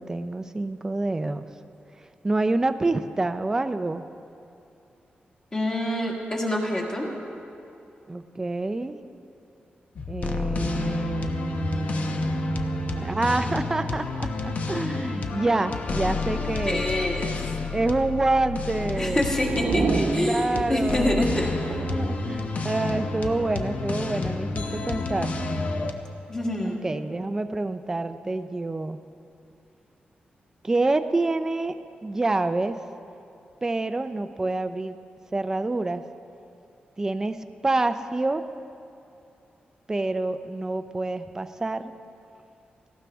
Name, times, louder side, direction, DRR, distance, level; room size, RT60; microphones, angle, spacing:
voice 1, 0.0-1.4 2.2-4.0 8.1-8.9 10.1-16.9 17.7-19.3 20.2-25.3 26.6-29.0 30.6-32.8 33.6-35.0 35.3-36.0 37.0-38.4 39.9-41.9, right 2 dB, 15° right, 10 dB, 0.4 m, -27 dB
voice 2, 5.5-7.1 16.6-17.5 19.0-21.5 26.3-26.8, left 1 dB, 20° left, -1 dB, 1.8 m, -26 dB
sound 1, 10.0-25.9, left 3 dB, 45° left, 0.8 m, -30 dB
sound 2, 18.7-21.4, right 3 dB, 55° right, 0.9 m, -29 dB
18.0 x 15.5 x 3.5 m, 2.7 s
wide cardioid pair, 170°, 3 cm